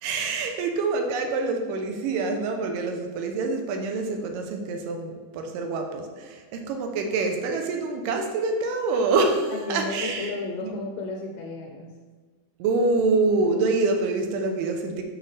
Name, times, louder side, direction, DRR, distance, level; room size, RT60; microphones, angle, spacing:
voice 1, 0.0-10.3 10.6-10.7 12.6-15.0, right 3 dB, 80° right, 4 dB, 2.2 m, -26 dB
voice 2, 9.5-12.0, left 3 dB, 80° left, 2 dB, 2.2 m, -33 dB
8.7 x 4.2 x 3.3 m, 1.4 s
omnidirectional pair, 4.2 m